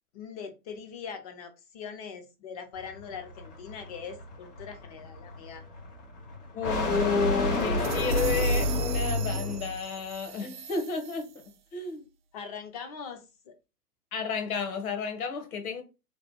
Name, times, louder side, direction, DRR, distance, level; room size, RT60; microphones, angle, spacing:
voice 1, 0.1-5.6 12.3-13.5, left 6 dB, 30° left, 0.4 m, -42 dB
sound 1, 2.8-9.8, left 1 dB, 85° left, 1.6 m, -30 dB
voice 2, 6.5-11.4 11.7-12.0 14.1-15.8, left 5 dB, 65° left, 1.1 m, -31 dB
sound 2, 7.5-11.6, right 8 dB, 35° right, 0.4 m, -41 dB
3.2 x 2.2 x 2.9 m
hypercardioid pair, 120°, 45 cm